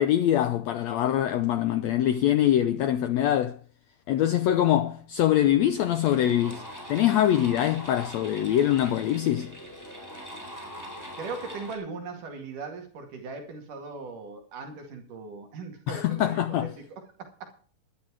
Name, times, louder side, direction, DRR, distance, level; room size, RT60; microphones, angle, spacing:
voice 1, 0.0-3.6 4.1-6.6 6.9-9.5 15.9-16.7, left 11 dB, 90° left, 1.5 m, -23 dB
sound 1, 5.0-5.1 5.5-11.8, equal, 5° left, 3.7 m, -42 dB
voice 2, 11.2-17.5, right 4 dB, 65° right, 3.6 m, -39 dB
13.5 x 11.5 x 4.8 m
omnidirectional pair, 4.0 m